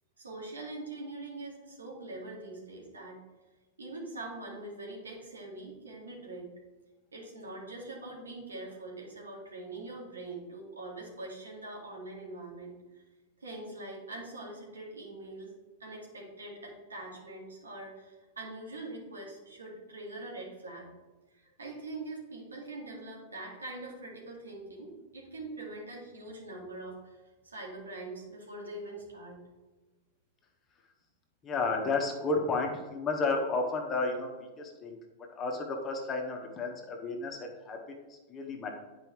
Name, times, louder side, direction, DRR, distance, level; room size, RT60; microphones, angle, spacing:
voice 1, 0.2-3.2 3.8-6.5 7.1-13.0 13.4-15.5 15.8-20.9 21.3-29.4, right 2 dB, 80° right, -2 dB, 2.1 m, -43 dB
voice 2, 31.4-35.0 35.3-37.8 38.1-38.7, left 3 dB, 25° left, 2 dB, 1.4 m, -32 dB
9.6 x 4.8 x 3.2 m, 1.2 s
figure-of-eight pair, 95°, 0 cm